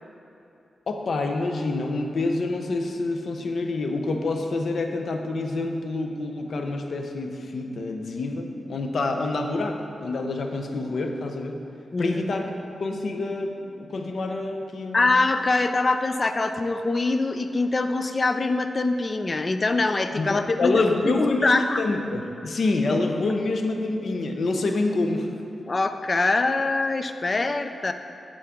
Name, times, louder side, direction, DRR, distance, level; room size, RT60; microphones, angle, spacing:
voice 1, 0.9-11.6 12.0-12.5 12.8-15.0 20.2-25.3, left 2 dB, 65° left, 3 dB, 0.8 m, -27 dB
voice 2, 11.9-12.2 14.9-21.8 25.7-27.9, left 3 dB, 35° left, 8 dB, 0.4 m, -24 dB
8.4 x 8.4 x 3.7 m, 2.9 s
wide cardioid pair, 95°, 0 cm